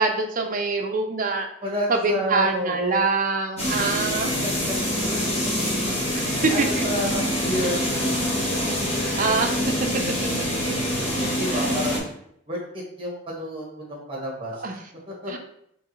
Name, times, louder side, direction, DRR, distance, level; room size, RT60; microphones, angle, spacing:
voice 1, 0.0-1.5 1.9-4.3 5.9-6.8 9.2-9.6 11.5-11.7 14.6-14.7 15.3-15.4, right 3 dB, 40° right, 4 dB, 0.5 m, -24 dB
voice 2, 1.6-3.0 4.3-4.8 5.1-5.2 6.5-8.2 11.2-12.0 12.5-12.6 13.0-14.5 15.2-15.3, equal, 25° right, -2 dB, 1.3 m, -29 dB
sound 1, 3.6-12.0, equal, 30° left, 1.1 m, -25 dB
4.6 x 3.1 x 3.1 m, 0.73 s
head